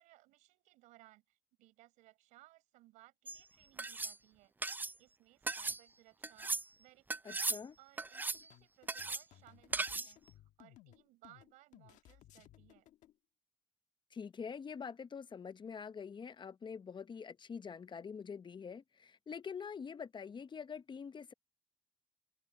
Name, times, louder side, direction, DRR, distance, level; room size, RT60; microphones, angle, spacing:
voice 1, 0.0-4.5 5.0-12.9, right 18 dB, 85° right, 4.8 m, -64 dB
sound 1, 3.3-3.4 3.8-4.1 4.6-4.9 5.5-5.8 6.2-6.6 7.1-7.6 8.0-8.5 8.9-9.2 9.7-10.1, right 3 dB, 15° right, 0.4 m, -37 dB
voice 2, 7.2-7.8 14.1-21.3, left 6 dB, 40° left, 0.8 m, -45 dB
sound 2, 8.3-13.1, left 14 dB, 80° left, 1.5 m, -61 dB
supercardioid pair, 70°, 13 cm